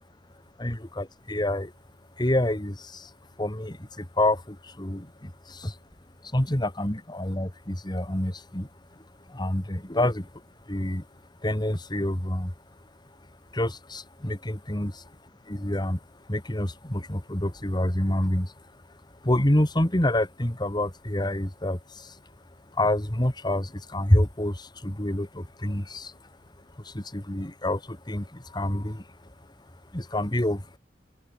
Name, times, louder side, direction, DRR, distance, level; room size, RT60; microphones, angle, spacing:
voice 1, 0.6-1.7 2.2-3.1 3.4-5.8 6.3-8.7 9.3-10.3 10.7-11.0 11.4-12.5 13.5-15.0 15.5-16.0 16.3-18.5 19.2-22.1 22.7-26.1 26.8-29.0 29.9-30.8, left 1 dB, 25° left, 2.4 m, -27 dB
open air
head